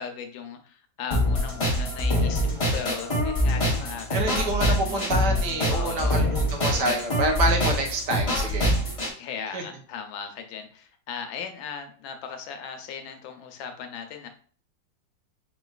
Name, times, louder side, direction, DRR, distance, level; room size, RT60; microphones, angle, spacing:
voice 1, 0.0-5.0 5.7-6.1 9.1-14.3, left 7 dB, 85° left, 6 dB, 1.4 m, -37 dB
sound 1, 1.1-9.1, equal, 30° left, 0.6 m, -24 dB
voice 2, 4.1-8.7 9.5-9.6, right 2 dB, 65° right, 3 dB, 1.3 m, -27 dB
5.2 x 3.1 x 2.3 m, 0.44 s
omnidirectional pair, 2.1 m